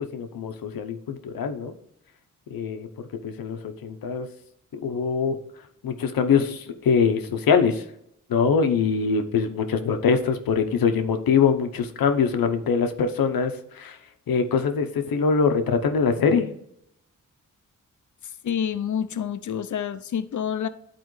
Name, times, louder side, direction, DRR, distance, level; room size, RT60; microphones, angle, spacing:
voice 1, 0.1-1.7 2.5-2.9 3.2-4.3 4.7-5.4 5.8-7.8 8.3-14.0 14.3-16.5, left 6 dB, 90° left, 0.8 m, -23 dB
voice 2, 18.4-20.7, left 8 dB, 60° left, 0.6 m, -28 dB
11.0 x 4.2 x 3.1 m
cardioid pair, 65°, 34 cm